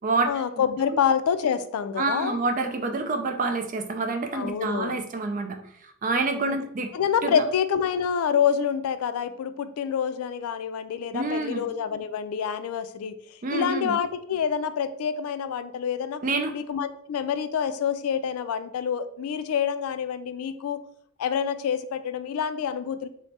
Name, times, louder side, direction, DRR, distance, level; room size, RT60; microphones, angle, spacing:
voice 1, 0.3-2.4 4.3-5.0 6.4-6.6 6.9-13.1 13.5-16.2 16.5-20.8 21.2-23.1, left 7 dB, 85° left, 12 dB, 0.3 m, -27 dB
voice 2, 2.0-6.9 7.2-7.4 11.1-11.7 13.4-14.0 16.2-16.6, right 3 dB, 35° right, 6 dB, 0.4 m, -27 dB
3.2 x 2.1 x 4.1 m, 0.67 s
head